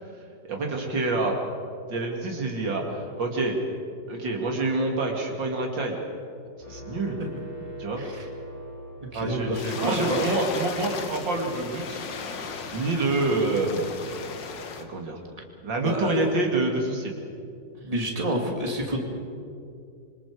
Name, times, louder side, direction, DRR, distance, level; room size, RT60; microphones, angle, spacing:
voice 1, 0.4-1.4 1.9-3.6 4.1-6.0 6.7-7.2 7.8-8.0 9.1-12.0 12.7-13.9 14.9-15.2 15.6-17.2, right 2 dB, 80° right, 1 dB, 3.1 m, -27 dB
sound 1, 6.6-9.6, right 1 dB, 40° left, 7.5 m, -41 dB
voice 2, 9.1-10.2 15.8-16.2 17.8-19.0, right 1 dB, 20° right, 0 dB, 2.7 m, -29 dB
sound 2, 9.5-14.8, left 5 dB, 75° left, 2.0 m, -36 dB
26.5 x 25.0 x 4.9 m, 2.5 s
omnidirectional pair, 2.0 m